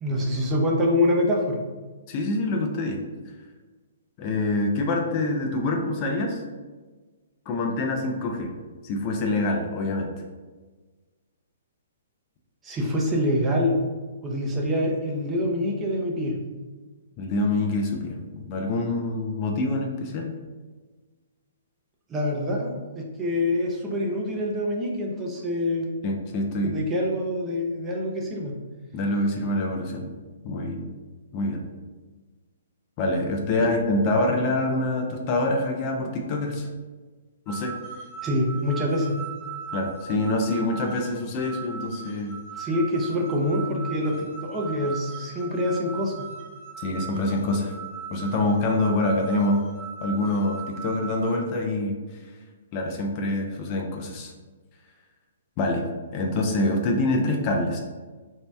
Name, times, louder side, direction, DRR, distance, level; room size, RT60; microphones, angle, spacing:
voice 1, 0.0-1.6 12.6-13.8 14.2-16.4 22.1-25.9 26.6-28.5 33.6-33.7 38.2-39.2 42.6-46.3, left 1 dB, 15° right, -1 dB, 0.5 m, -25 dB
voice 2, 2.1-3.0 4.2-6.4 7.5-8.5 8.8-10.1 17.2-20.3 26.0-26.8 28.9-30.1 30.4-30.9 31.3-31.6 33.0-36.7 37.5-37.8 39.7-42.3 46.8-47.7 48.1-49.6 50.0-52.0 52.7-54.3 55.6-55.9 56.1-57.8, left 2 dB, 35° left, 2 dB, 0.4 m, -25 dB
sound 1, 37.5-51.3, right 6 dB, 5° left, 1.1 m, -39 dB
2.7 x 2.1 x 3.2 m, 1.3 s
hypercardioid pair, 135°, 0 cm